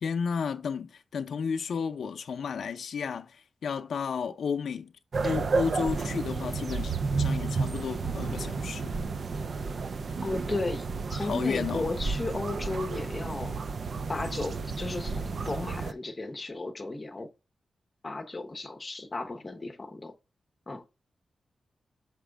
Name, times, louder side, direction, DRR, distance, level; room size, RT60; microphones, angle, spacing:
voice 1, 0.0-4.9 5.2-9.0 11.2-11.9, left 6 dB, 80° left, 0.5 m, -32 dB
sound 1, 5.1-15.9, right 4 dB, 45° right, 0.4 m, -32 dB
voice 2, 10.2-13.6 14.1-17.3 18.0-20.1 20.7-20.8, left 2 dB, 20° left, 0.8 m, -34 dB
6.0 x 5.0 x 3.4 m
wide cardioid pair, 180°, 0 cm